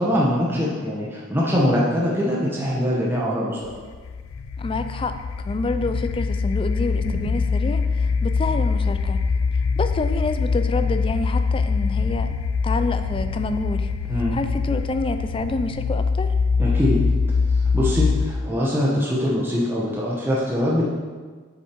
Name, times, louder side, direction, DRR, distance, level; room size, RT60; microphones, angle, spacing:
voice 1, 0.0-3.7 14.1-14.4 16.6-17.0 17.7-20.8, equal, 10° right, -5 dB, 1.1 m, -22 dB
sound 1, 3.7-18.5, left 5 dB, 80° left, 0.4 m, -23 dB
voice 2, 4.6-9.2 9.8-12.3 12.6-13.9 14.3-16.4, left 2 dB, 25° left, 9 dB, 0.4 m, -28 dB
sound 2, 7.0-11.0 11.3-11.4, equal, 40° left, 2.4 m, -42 dB
7.3 x 6.8 x 4.6 m, 1.5 s
head